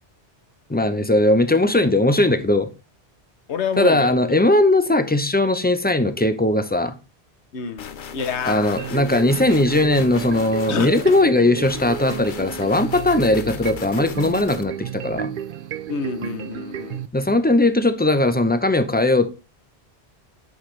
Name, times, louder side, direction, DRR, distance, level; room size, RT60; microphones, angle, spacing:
voice 1, 0.7-2.7 3.8-7.0 8.4-15.3 17.1-19.3, left 2 dB, 10° left, 0.6 m, -19 dB
voice 2, 3.5-4.3 7.5-8.9 10.7-11.1 15.9-17.0, left 6 dB, 80° left, 1.2 m, -28 dB
sound 1, 7.8-11.3 11.6-14.6, left 7 dB, 55° left, 0.8 m, -37 dB
sound 2, 8.8-17.1, right 10 dB, 60° right, 0.6 m, -33 dB
8.8 x 5.8 x 3.2 m
omnidirectional pair, 1.1 m